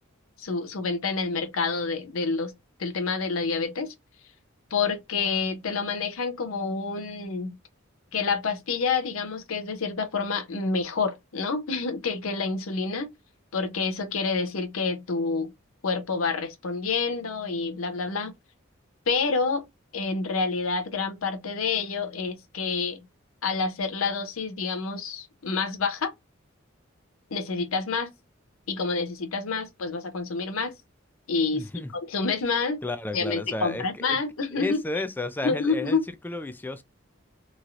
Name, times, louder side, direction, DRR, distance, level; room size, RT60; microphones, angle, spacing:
voice 1, 0.4-2.5 2.8-3.9 4.7-7.6 8.1-13.1 13.5-15.5 15.8-18.3 19.1-19.6 19.9-23.1 23.4-26.1 27.3-28.1 28.7-30.7 31.3-31.7 31.9-32.8 33.1-34.8 35.4-36.0, left 4 dB, 80° left, 0.7 m, -28 dB
voice 2, 31.5-31.9 32.8-34.2 34.5-36.0 36.2-36.8, left 2 dB, 10° left, 0.3 m, -32 dB
3.0 x 2.7 x 2.4 m
head